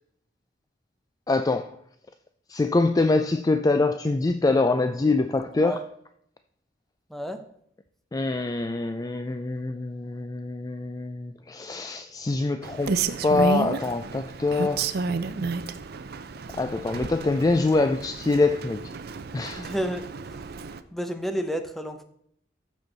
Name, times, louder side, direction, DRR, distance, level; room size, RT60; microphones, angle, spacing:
voice 1, 1.3-1.8 2.5-5.8 8.1-14.9 16.6-18.8 19.3-19.7, left 3 dB, 20° left, 0.3 m, -24 dB
voice 2, 7.1-7.4 19.5-20.4 20.9-22.0, equal, ahead, 0.7 m, -31 dB
Rain, 12.6-20.8, right 4 dB, 55° right, 0.5 m, -31 dB
14.0 x 6.3 x 3.9 m
head